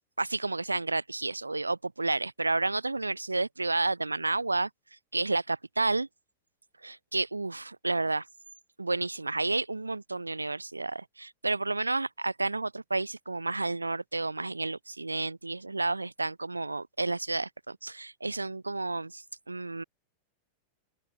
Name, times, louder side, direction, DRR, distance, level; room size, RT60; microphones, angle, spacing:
voice 1, 0.2-4.7 5.1-6.1 6.8-8.2 8.8-19.8, right 3 dB, 80° right, 4.2 m, -31 dB
open air
figure-of-eight pair, 90°, 0 cm